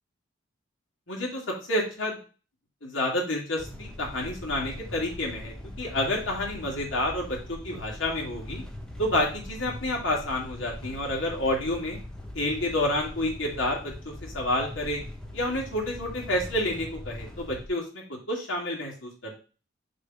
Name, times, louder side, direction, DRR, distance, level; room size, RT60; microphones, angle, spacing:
voice 1, 1.1-2.2 2.8-8.6 9.0-12.0 12.3-15.0 15.3-19.4, left 1 dB, 80° left, -1 dB, 2.5 m, -29 dB
sound 1, 3.6-17.7, left 1 dB, 5° left, 0.9 m, -41 dB
6.6 x 3.5 x 4.5 m, 0.35 s
head